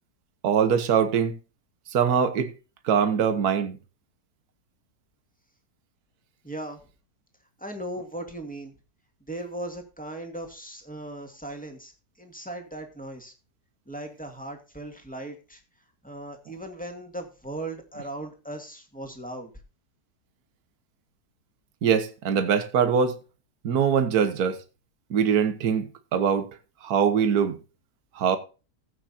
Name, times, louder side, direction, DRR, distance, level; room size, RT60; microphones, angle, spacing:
voice 1, 0.4-1.4 1.9-2.5 2.8-3.8 21.8-23.2 23.6-24.6 25.1-25.9 26.1-26.5 26.8-27.6 28.2-28.4, right 7 dB, 65° right, 1.6 m, -22 dB
voice 2, 6.4-6.8 7.6-8.7 9.3-11.9 12.2-13.3 13.9-15.6 16.0-19.5, right 1 dB, 5° left, 2.3 m, -38 dB
16.0 x 8.4 x 2.8 m
omnidirectional pair, 1.8 m